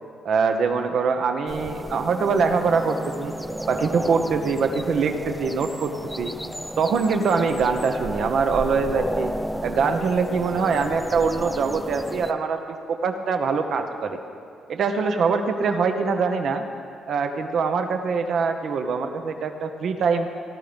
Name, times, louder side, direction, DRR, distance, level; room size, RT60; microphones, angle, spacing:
voice 1, 0.2-3.3 3.7-6.3 6.8-9.3 9.6-12.6 12.9-14.2 14.7-16.6 17.1-20.3, right 5 dB, 65° right, 6 dB, 0.9 m, -23 dB
sound 1, 1.5-12.3, equal, ahead, 0.5 m, -33 dB
15.0 x 12.5 x 5.2 m, 2.6 s
cardioid pair, 90°, 0 cm